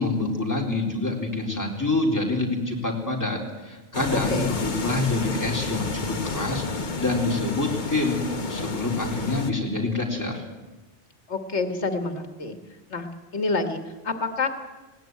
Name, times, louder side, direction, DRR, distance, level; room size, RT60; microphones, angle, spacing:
voice 1, 0.0-6.6 7.0-8.2 8.5-10.4, left 2 dB, 15° left, -1 dB, 3.9 m, -26 dB
sound 1, 3.9-9.5, left 3 dB, 45° left, 1.4 m, -31 dB
voice 2, 4.1-4.6 11.3-12.6 12.9-14.5, left 3 dB, 85° left, 7 dB, 1.9 m, -28 dB
19.0 x 18.5 x 9.2 m, 1.2 s
omnidirectional pair, 1.1 m